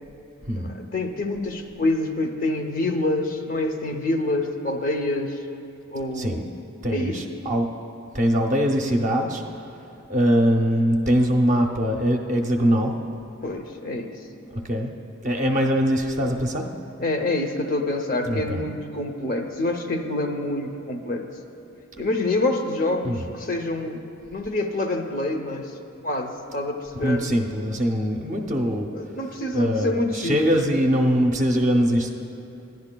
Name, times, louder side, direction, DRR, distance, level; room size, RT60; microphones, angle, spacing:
voice 1, 0.6-5.4 5.9-6.4 6.9-7.2 13.4-14.2 17.0-21.3 22.0-24.0 24.3-25.7 26.0-27.3 28.9-30.4, left 2 dB, 40° left, 4 dB, 0.6 m, -26 dB
voice 2, 6.8-7.7 8.1-9.4 10.1-12.9 14.5-14.9 15.2-16.7 18.3-18.6 23.0-23.2 27.0-28.9 29.5-32.1, equal, 35° right, 2 dB, 0.6 m, -22 dB
15.0 x 10.5 x 2.2 m, 2.7 s
head